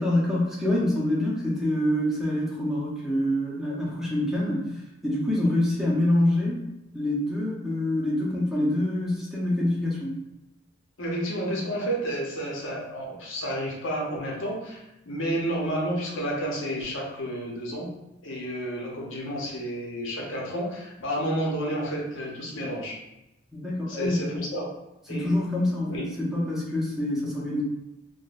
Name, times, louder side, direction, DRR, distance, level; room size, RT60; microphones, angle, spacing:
voice 1, 0.0-4.7 5.0-6.7 6.9-10.1 23.5-24.3 25.1-27.6, left 1 dB, ahead, -6 dB, 0.6 m, -26 dB
voice 2, 11.0-17.9 18.2-22.9 23.9-24.7 25.1-25.3 25.9-26.1, equal, 90° left, -3 dB, 0.8 m, -31 dB
3.6 x 2.1 x 2.4 m, 0.93 s
head